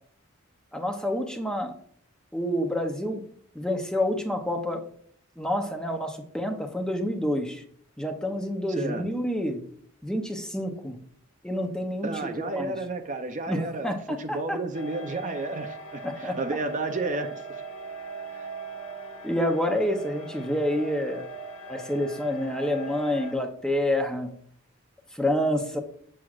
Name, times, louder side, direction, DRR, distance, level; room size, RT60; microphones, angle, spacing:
voice 1, 0.7-1.7 2.3-3.2 3.5-4.8 5.4-7.6 8.0-9.6 10.0-11.0 11.4-12.7 13.5-14.6 16.0-16.4 19.2-21.2 21.7-24.3 25.1-25.8, left 1 dB, 5° left, 4 dB, 0.7 m, -28 dB
voice 2, 8.7-9.1 12.0-13.9 14.2-17.6 18.3-18.5, right 2 dB, 35° right, 6 dB, 0.5 m, -32 dB
sound 1, 14.7-23.3, right 4 dB, 80° left, 1.2 m, -40 dB
7.7 x 7.4 x 2.4 m, 0.62 s
head